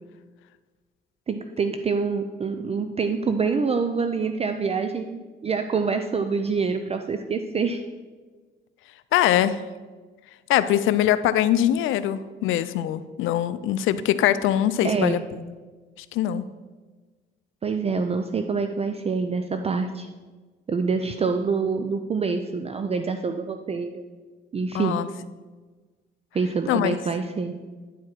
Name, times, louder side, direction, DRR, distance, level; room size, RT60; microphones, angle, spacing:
voice 1, 1.3-7.8 14.8-15.2 17.6-20.1 20.7-24.0 24.5-25.0 26.3-27.5, right 5 dB, 30° right, 7 dB, 0.4 m, -26 dB
voice 2, 9.1-9.6 10.5-15.2 16.0-16.4 24.7-25.1 26.7-27.0, left 11 dB, 85° left, 14 dB, 0.4 m, -22 dB
9.9 x 4.7 x 4.5 m, 1.3 s
cardioid pair, 90°, 20 cm